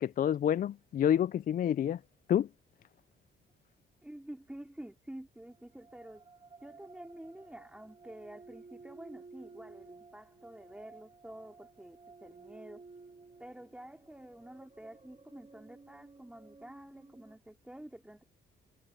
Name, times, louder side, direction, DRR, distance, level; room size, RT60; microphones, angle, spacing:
voice 1, 0.0-2.0 2.3-2.5, left 10 dB, 45° left, 0.4 m, -28 dB
voice 2, 4.0-6.2 6.6-12.8 13.4-18.2, right 1 dB, 5° right, 2.9 m, -49 dB
sound 1, 5.5-17.4, right 4 dB, 25° right, 2.7 m, -55 dB
cardioid pair, 90°, 20 cm